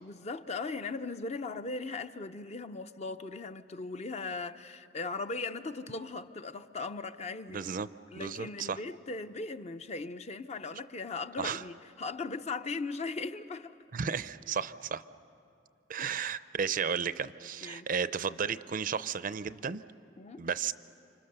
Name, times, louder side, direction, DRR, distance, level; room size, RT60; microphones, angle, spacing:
voice 1, 0.0-7.6 8.1-13.7 16.0-16.1 17.6-17.9 20.2-20.4, left 3 dB, 35° left, 0.6 m, -38 dB
voice 2, 7.5-7.9 8.2-8.8 11.4-11.6 13.9-15.0 15.9-19.8 20.4-20.7, right 6 dB, 50° right, 0.5 m, -33 dB
29.5 x 26.0 x 6.7 m
head